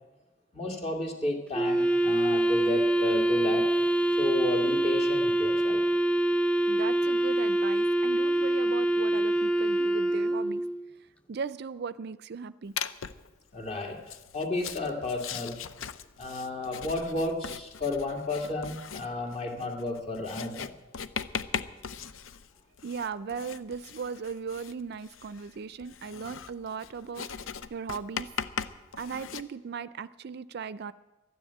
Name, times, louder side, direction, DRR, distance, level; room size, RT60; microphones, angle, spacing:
voice 1, 0.5-3.7 4.2-5.8 13.5-14.0 14.3-15.6 16.2-20.7, left 2 dB, 35° left, 2 dB, 2.5 m, -32 dB
Wind instrument woodwind instrument, 1.5-10.8, right 1 dB, 5° left, 0.6 m, -25 dB
voice 2, 6.7-10.6 11.3-12.7 22.8-27.3 27.7-28.3 29.0-30.9, right 5 dB, 55° right, 16 dB, 0.4 m, -38 dB
Writing, 12.8-13.3 14.0-29.4, left 7 dB, 85° left, 0.6 m, -39 dB
13.0 x 10.0 x 9.0 m, 1.1 s
head